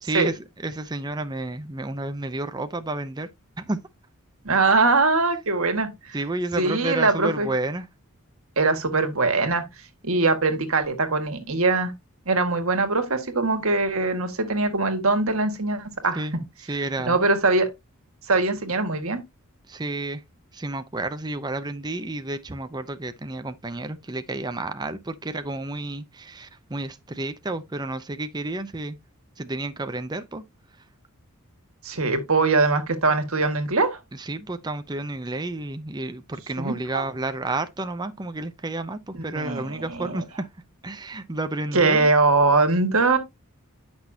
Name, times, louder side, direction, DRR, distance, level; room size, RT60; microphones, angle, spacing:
voice 1, 0.0-3.3 3.6-3.8 6.1-7.9 16.1-16.4 16.7-17.2 19.7-20.2 20.5-29.0 29.4-30.4 34.1-40.5 40.8-42.1, right 2 dB, 20° right, 0.6 m, -31 dB
voice 2, 4.4-6.2 6.6-7.5 8.6-9.6 10.0-11.9 12.3-16.2 17.0-17.7 18.3-19.2 31.8-34.0 36.6-37.0 39.3-40.2 41.7-43.2, right 3 dB, 70° right, 1.8 m, -22 dB
10.0 x 6.1 x 2.7 m
head